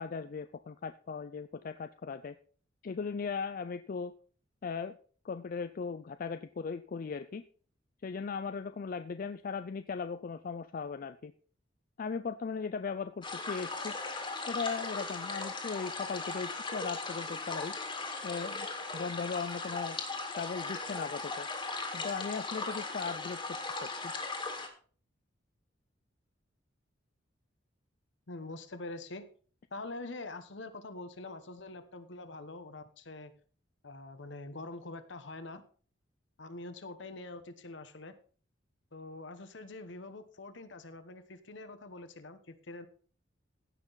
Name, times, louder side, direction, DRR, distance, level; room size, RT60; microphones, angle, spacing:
voice 1, 0.0-2.4 2.8-4.1 4.6-5.0 5.2-7.4 8.0-11.3 12.0-13.9 14.5-17.7 18.2-18.7 18.9-20.0 20.4-21.5 21.9-24.1, left 5 dB, 45° left, 11 dB, 0.4 m, -38 dB
sound 1, 13.2-24.7, left 3 dB, 25° left, 1.9 m, -38 dB
voice 2, 28.3-29.3 29.7-33.3 33.8-35.6 36.4-38.1 38.9-42.9, left 2 dB, 65° left, 10 dB, 1.0 m, -45 dB
16.0 x 6.0 x 4.0 m, 0.43 s
head